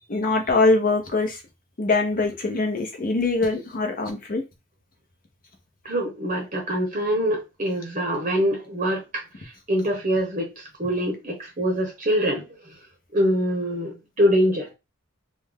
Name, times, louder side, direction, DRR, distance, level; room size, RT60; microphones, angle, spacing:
voice 1, 0.1-1.4 1.8-4.4, left 3 dB, 40° left, 0.8 m, -23 dB
voice 2, 5.8-9.2 9.7-12.4 13.1-14.7, equal, 35° right, 0.8 m, -24 dB
3.4 x 2.2 x 3.5 m
head